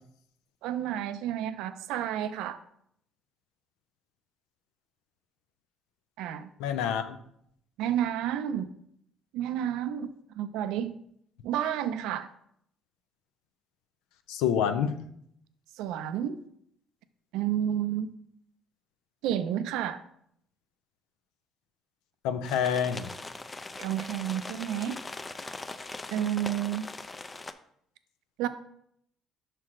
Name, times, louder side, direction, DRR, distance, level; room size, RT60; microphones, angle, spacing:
voice 1, 0.6-2.6 6.2-6.5 7.8-8.7 9.3-10.9 11.4-12.3 15.8-16.4 17.3-18.1 19.2-20.0 23.8-25.0 26.1-26.9 28.4-28.5, right 10 dB, 80° right, 0.4 m, -30 dB
voice 2, 6.6-7.2 14.3-15.0 22.2-23.1, left 8 dB, 90° left, 0.5 m, -27 dB
sound 1, 22.4-27.5, left 3 dB, 25° left, 0.4 m, -41 dB
6.2 x 4.4 x 3.7 m
supercardioid pair, 85°, 0 cm